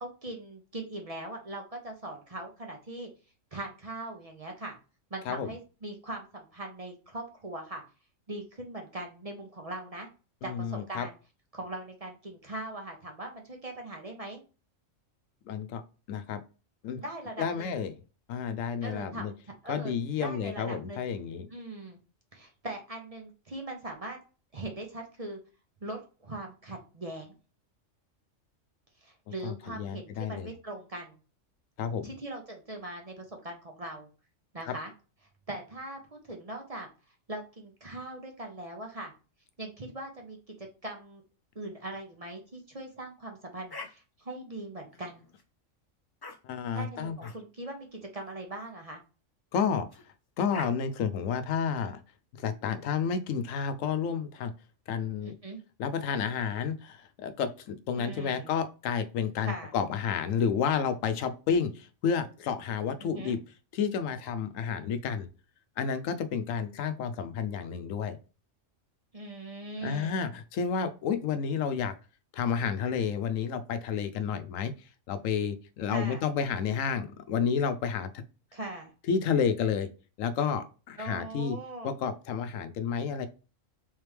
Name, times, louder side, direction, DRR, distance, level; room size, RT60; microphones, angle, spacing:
voice 1, 0.0-3.1 3.5-4.7 5.1-7.8 8.3-10.1 10.4-11.2 11.5-14.4 17.0-17.7 18.8-19.4 19.6-19.9 20.2-21.1 21.5-22.0 22.3-24.2 24.5-25.4 25.8-27.4 29.0-31.2 32.0-34.1 34.5-34.9 35.5-36.9 37.3-39.1 39.6-41.2 41.5-45.2 46.7-49.0 55.2-55.6 58.0-58.5 59.4-59.7 63.0-63.4 69.1-70.2 75.9-76.2 78.5-78.9 81.0-81.9, right 2 dB, 35° right, 2 dB, 0.8 m, -40 dB
voice 2, 10.4-11.1 15.5-15.8 16.1-16.4 16.8-17.0 17.4-17.9 18.3-19.3 19.7-21.5 29.4-30.5 31.8-32.1 34.7-34.8 46.4-47.2 49.5-49.9 50.4-52.0 52.4-54.5 54.9-55.3 55.8-63.4 63.7-65.3 65.8-68.2 69.8-71.9 72.3-74.7 75.1-78.2 79.1-79.9 80.2-81.6 81.8-83.3, left 6 dB, 90° left, 10 dB, 1.0 m, -30 dB
sound 1, 43.7-43.9 44.9-45.4 46.2-46.4 47.2-47.4 48.2-48.4 49.9-50.0 50.5-50.7, left 4 dB, 30° left, 0.4 m, -43 dB
3.6 x 3.4 x 3.1 m, 0.34 s
omnidirectional pair, 1.3 m